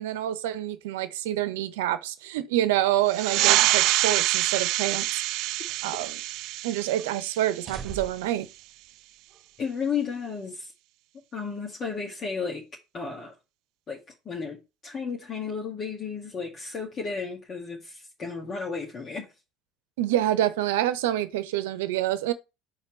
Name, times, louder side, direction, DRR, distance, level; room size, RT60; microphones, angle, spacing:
voice 1, 0.0-5.1 5.8-6.2 6.6-8.5 20.0-22.3, right 13 dB, 80° right, 0.8 m, -27 dB
sound 1, 3.1-8.2, right 17 dB, 65° right, 0.3 m, -26 dB
sound 2, 3.4-4.1 4.5-4.6 5.4-6.4 6.7-7.1 7.5-8.4 9.3-9.4, right 6 dB, 40° right, 1.2 m, -43 dB
voice 2, 9.6-10.7 11.3-12.7 12.9-13.3 13.9-19.3, left 5 dB, 40° left, 1.9 m, -33 dB
5.6 x 4.4 x 4.3 m
hypercardioid pair, 75°, 0 cm